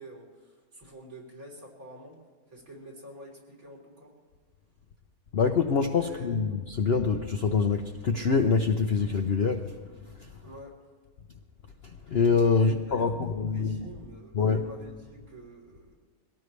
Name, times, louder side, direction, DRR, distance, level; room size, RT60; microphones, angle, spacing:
voice 1, 0.0-2.2 2.5-4.1 6.0-6.6 10.4-10.8 12.5-15.9, right 1 dB, 55° right, -2 dB, 4.2 m, -47 dB
voice 2, 5.3-9.6 12.1-13.9 14.3-14.6, left 5 dB, 55° left, 4 dB, 0.7 m, -25 dB
23.0 x 17.5 x 3.3 m, 1.5 s
omnidirectional pair, 1.8 m